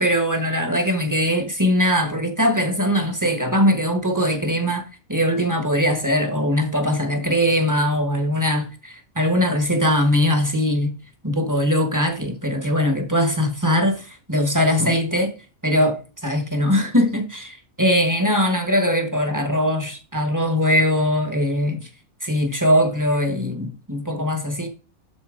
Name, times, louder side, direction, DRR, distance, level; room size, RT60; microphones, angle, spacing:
voice 1, 0.0-10.9 11.2-15.3 15.6-21.9 22.2-24.7, equal, 15° right, 1.1 m, -21 dB
12.0 x 4.2 x 3.8 m
omnidirectional pair, 1.5 m